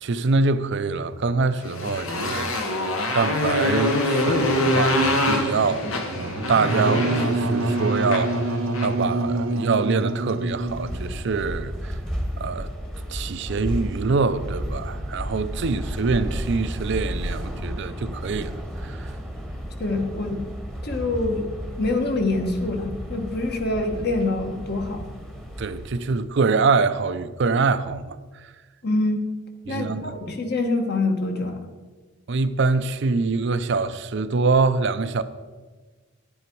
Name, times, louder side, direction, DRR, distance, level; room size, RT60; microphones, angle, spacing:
voice 1, 0.0-2.9 3.1-8.5 8.8-12.0 12.4-12.7 13.1-19.1 25.6-28.5 29.7-30.1 32.3-35.2, right 4 dB, 60° right, 0.5 m, -24 dB
Motorcycle, 1.6-9.0, left 1 dB, 80° left, 1.5 m, -25 dB
Wind instrument woodwind instrument, 6.6-11.2, right 2 dB, 75° right, 0.9 m, -25 dB
sound 1, 10.5-26.2, equal, ahead, 1.0 m, -33 dB
voice 2, 19.8-20.4 20.8-21.4 21.8-25.1 28.8-29.2 29.7-31.6, left 2 dB, 50° left, 1.3 m, -25 dB
10.5 x 9.8 x 4.6 m
head